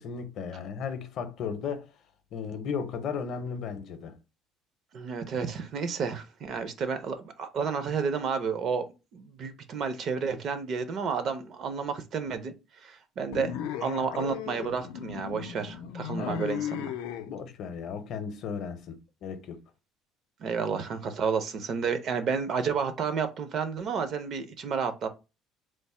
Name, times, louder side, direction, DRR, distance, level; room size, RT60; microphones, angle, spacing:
voice 1, 0.0-1.9 2.3-4.1 16.2-16.4 17.3-19.6, left 6 dB, 45° left, 0.6 m, -35 dB
voice 2, 4.9-8.9 9.1-12.5 12.8-13.5 13.8-16.8 20.4-25.1, right 6 dB, 40° right, 0.5 m, -31 dB
sound 1, 13.3-17.3, left 9 dB, 90° left, 0.4 m, -36 dB
3.1 x 2.1 x 4.2 m
cardioid pair, 170°, 0 cm